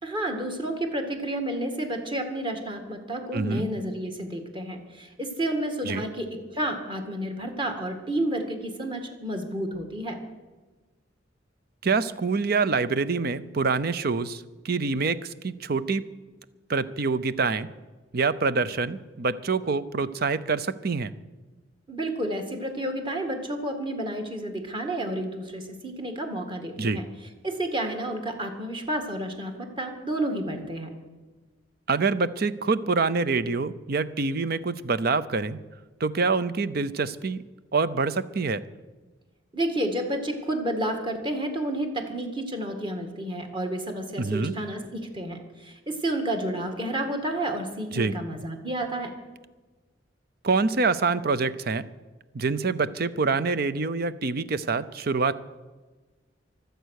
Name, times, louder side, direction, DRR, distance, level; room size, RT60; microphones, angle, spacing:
voice 1, 0.0-10.2 21.9-27.1 27.4-30.9 39.5-49.1, right 1 dB, 25° right, 4 dB, 2.0 m, -30 dB
voice 2, 3.3-3.7 5.9-6.0 11.8-16.0 16.7-17.7 18.1-21.1 26.8-27.0 31.9-35.6 36.0-37.4 37.7-38.6 44.2-44.5 47.9-48.1 50.4-51.8 52.3-55.3, right 4 dB, 55° right, 14 dB, 0.7 m, -26 dB
24.0 x 8.1 x 6.5 m, 1.3 s
head